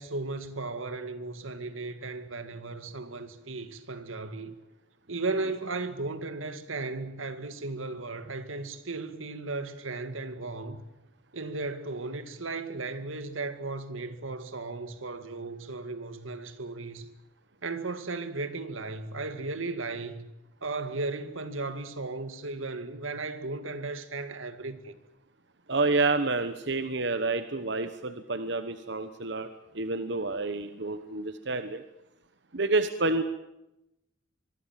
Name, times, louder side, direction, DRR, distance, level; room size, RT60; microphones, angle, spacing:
voice 1, 0.0-4.5 5.1-10.8 11.3-17.1 17.6-20.3 20.6-25.0, right 3 dB, 85° right, 2.1 m, -35 dB
voice 2, 25.7-29.5 29.7-31.8 32.5-33.2, right 3 dB, 60° right, 1.2 m, -28 dB
25.5 x 22.5 x 7.6 m
head